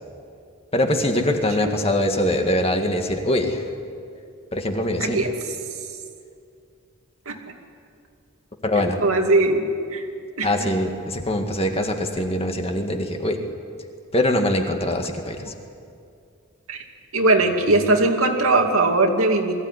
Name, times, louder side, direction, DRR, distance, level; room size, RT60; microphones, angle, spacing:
voice 1, 0.7-3.6 4.5-5.2 8.6-9.0 10.4-13.4 14.1-15.5, left 1 dB, 30° left, 4 dB, 1.9 m, -23 dB
voice 2, 9.0-10.0 10.4-10.7 16.7-16.8 17.1-19.5, right 2 dB, 75° right, 3 dB, 2.5 m, -20 dB
22.5 x 16.0 x 9.8 m, 2.4 s
head